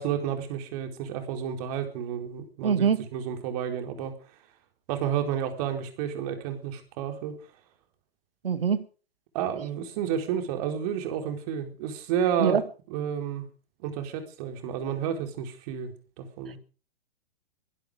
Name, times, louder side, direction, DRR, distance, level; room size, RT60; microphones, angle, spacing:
voice 1, 0.0-4.1 4.9-7.4 9.3-12.6 12.9-13.4 13.8-16.6, right 8 dB, 40° right, 4.3 m, -31 dB
voice 2, 2.6-3.1 8.4-8.9 12.4-12.6, right 7 dB, 65° right, 2.0 m, -23 dB
23.0 x 12.0 x 5.1 m
figure-of-eight pair, 115°, 30 cm